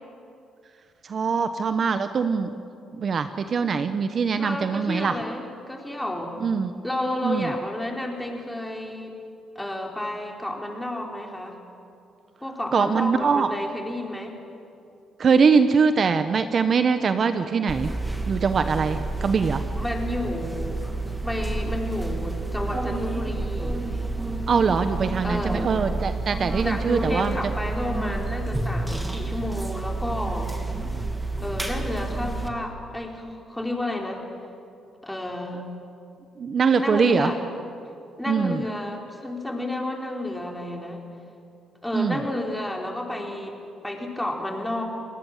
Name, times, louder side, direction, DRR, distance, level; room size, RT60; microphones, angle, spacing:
voice 1, 1.0-2.5 2.9-5.2 6.4-6.7 7.2-7.5 12.7-13.5 15.2-18.0 18.3-19.6 24.5-27.5 36.4-37.3 38.3-38.6 41.9-42.2, right 5 dB, 50° right, 9 dB, 1.0 m, -22 dB
voice 2, 4.4-6.3 6.8-9.2 9.5-11.6 12.4-14.4 19.8-20.8 21.2-23.8 25.2-25.7 26.6-30.5 31.4-34.2 35.0-35.6 36.8-37.4 38.2-41.0 41.8-44.8, left 1 dB, 5° left, 1 dB, 4.4 m, -31 dB
sound 1, 17.7-32.5, right 2 dB, 10° right, 2.5 m, -29 dB
29.5 x 19.5 x 7.4 m, 2.5 s
cardioid pair, 90°, 0 cm